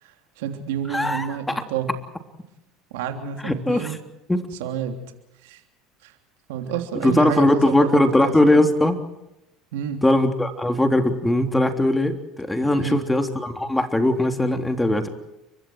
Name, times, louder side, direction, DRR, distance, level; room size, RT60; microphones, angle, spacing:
voice 1, 0.0-1.9 2.9-4.0 4.6-5.0 5.4-5.6 6.0-6.1 6.5-8.3 9.7-10.0 12.8-13.0, right 9 dB, 75° right, 5 dB, 3.2 m, -29 dB
voice 2, 0.9-1.3 1.5-1.6 3.4-4.0 4.3-4.5 7.0-9.0 10.0-15.1, left 1 dB, 10° left, 6 dB, 3.3 m, -20 dB
30.0 x 24.0 x 4.7 m, 0.89 s
hypercardioid pair, 80°, 0 cm